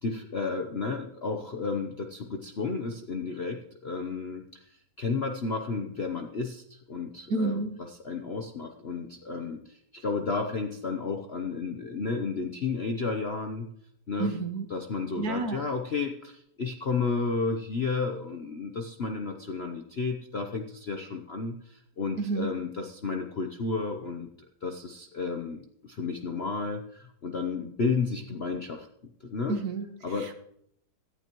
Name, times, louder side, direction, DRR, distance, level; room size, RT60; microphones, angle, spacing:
voice 1, 0.0-13.7 14.1-14.3 14.7-24.3 24.6-28.9 29.2-29.6 30.0-30.3, left 4 dB, 50° left, 3 dB, 0.7 m, -32 dB
voice 2, 7.3-7.7 14.2-14.6 15.2-15.6 22.2-22.5 29.5-29.8, right 3 dB, 55° right, 8 dB, 1.3 m, -29 dB
17.0 x 11.5 x 3.0 m, 0.71 s
omnidirectional pair, 2.1 m